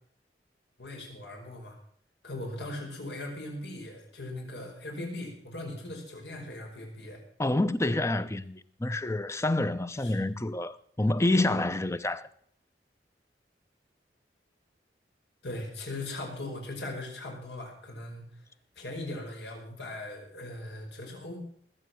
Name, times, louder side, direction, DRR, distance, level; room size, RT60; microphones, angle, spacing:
voice 1, 0.8-1.8 2.2-7.2 10.0-10.2 15.4-18.2 18.8-21.4, left 2 dB, 80° left, 5.3 m, -39 dB
voice 2, 7.4-12.3, left 2 dB, 15° left, 0.7 m, -28 dB
19.5 x 8.5 x 6.3 m
head